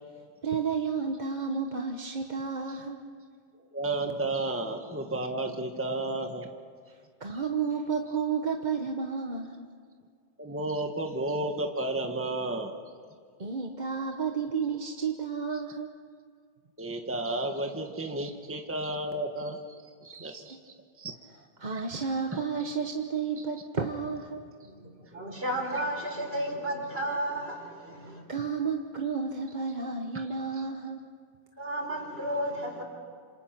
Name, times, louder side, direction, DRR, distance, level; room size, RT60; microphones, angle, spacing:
voice 1, 0.4-3.1 7.2-9.7 13.4-15.9 20.2-20.4 21.6-24.4 28.3-31.1, right 5 dB, 40° right, 3 dB, 1.3 m, -31 dB
voice 2, 3.7-6.5 10.4-12.7 16.8-19.7 20.0-21.1 21.7-22.7 23.4-23.5 30.1-30.3 30.5-30.6, right 2 dB, 10° right, 4 dB, 1.4 m, -33 dB
voice 3, 24.6-28.2 31.6-32.8, right 1 dB, 60° right, 2 dB, 4.5 m, -33 dB
27.5 x 27.0 x 6.0 m, 2.1 s
omnidirectional pair, 1.2 m